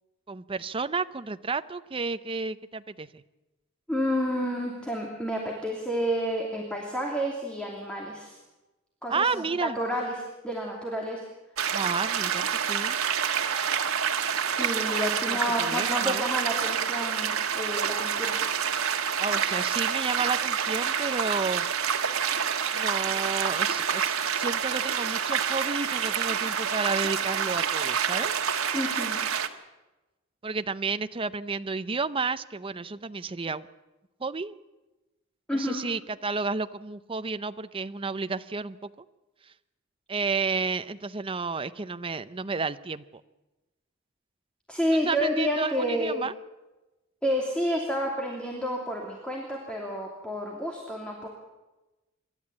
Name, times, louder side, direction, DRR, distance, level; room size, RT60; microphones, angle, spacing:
voice 1, 0.3-3.2 9.1-9.8 11.7-13.0 15.3-16.2 19.2-21.7 22.7-28.3 30.4-33.7 34.2-34.5 35.5-38.9 40.1-43.0 44.9-46.3, right 4 dB, 25° right, 12 dB, 0.6 m, -31 dB
voice 2, 3.9-8.4 9.0-10.1 10.4-11.2 14.6-18.4 28.7-29.2 35.5-35.8 44.7-46.2 47.2-51.3, equal, 5° left, -1 dB, 2.8 m, -30 dB
sound 1, 11.6-29.5, right 7 dB, 85° right, 1.4 m, -28 dB
27.0 x 12.5 x 8.5 m, 1.1 s
head